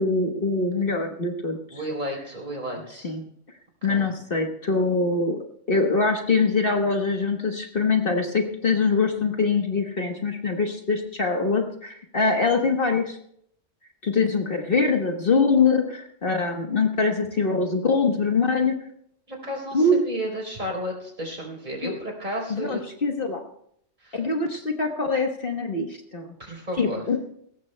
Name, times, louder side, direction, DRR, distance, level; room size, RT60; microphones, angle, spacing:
voice 1, 0.0-1.8 3.0-3.2 3.8-5.4 5.7-13.2 14.0-18.7 19.7-20.0 21.8-22.0 22.5-23.4 24.1-25.9 26.1-26.3 26.8-27.2, left 4 dB, 50° left, 3 dB, 1.3 m, -23 dB
voice 2, 1.7-3.1 3.8-4.1 19.3-22.8 24.0-24.2 26.4-27.0, equal, 40° right, -1 dB, 3.9 m, -33 dB
21.0 x 17.5 x 2.2 m, 0.69 s
omnidirectional pair, 1.3 m